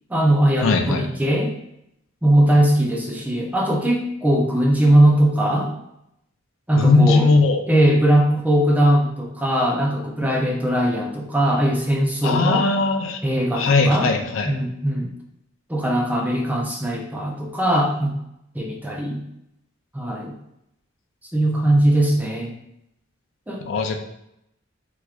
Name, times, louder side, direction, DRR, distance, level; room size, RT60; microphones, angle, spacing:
voice 1, 0.1-1.5 2.2-5.7 6.7-7.3 7.7-12.6 13.2-14.1 14.5-15.1 15.7-18.1 18.5-19.2 19.9-20.3 21.3-22.5 23.5-23.6, right 1 dB, 10° right, 0 dB, 0.4 m, -20 dB
voice 2, 0.6-1.0 6.8-7.6 12.2-13.2 13.6-14.5 23.7-24.0, left 3 dB, 70° left, 4 dB, 0.4 m, -18 dB
3.5 x 3.0 x 2.3 m, 0.81 s
head